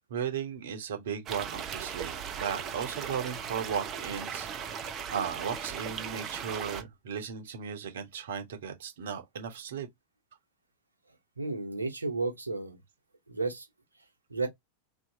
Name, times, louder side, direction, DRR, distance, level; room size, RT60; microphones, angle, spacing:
voice 1, 0.1-9.9, right 8 dB, 60° right, 1.0 m, -36 dB
sound 1, 1.3-6.8, right 7 dB, 30° right, 0.7 m, -38 dB
voice 2, 11.4-12.8 13.3-13.7 14.3-14.5, right 3 dB, 80° right, 1.1 m, -32 dB
3.1 x 2.7 x 2.7 m
figure-of-eight pair, 90°, 0 cm